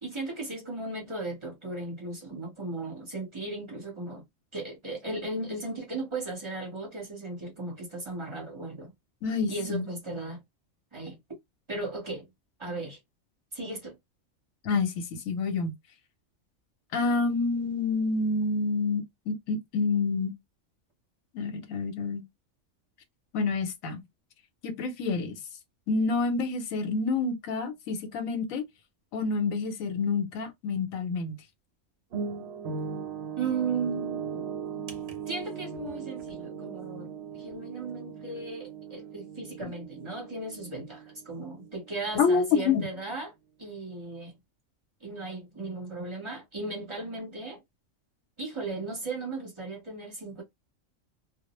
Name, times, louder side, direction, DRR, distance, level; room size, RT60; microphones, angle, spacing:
voice 1, 0.0-4.2 4.5-8.9 9.5-10.4 10.9-11.2 11.7-12.3 12.6-13.0 13.5-13.9 33.4-34.5 35.3-37.1 37.3-43.3 43.6-44.4 45.0-47.6 48.4-50.4, right 3 dB, 25° right, 0.8 m, -36 dB
voice 2, 9.2-9.8 14.6-15.7 16.9-20.3 21.3-22.2 23.3-24.0 24.6-25.3 25.9-28.6 29.1-31.4 42.1-42.8, left 4 dB, 85° left, 1.1 m, -28 dB
sound 1, 32.1-42.2 42.5-42.7, right 6 dB, 60° right, 0.8 m, -38 dB
2.3 x 2.0 x 2.9 m
omnidirectional pair, 1.4 m